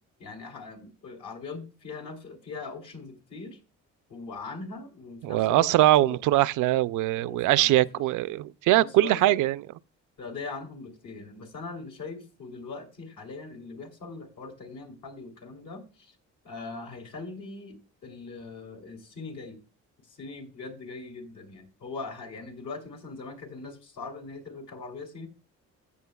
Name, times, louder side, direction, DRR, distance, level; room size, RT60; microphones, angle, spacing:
voice 1, 0.2-3.6 4.1-6.2 7.2-8.0 8.8-9.4 10.2-16.1 16.4-19.6 20.0-25.3, left 4 dB, 80° left, 3.2 m, -41 dB
voice 2, 5.2-9.6, right 15 dB, 80° right, 0.4 m, -22 dB
14.0 x 8.4 x 2.3 m
cardioid pair, 90°, 30 cm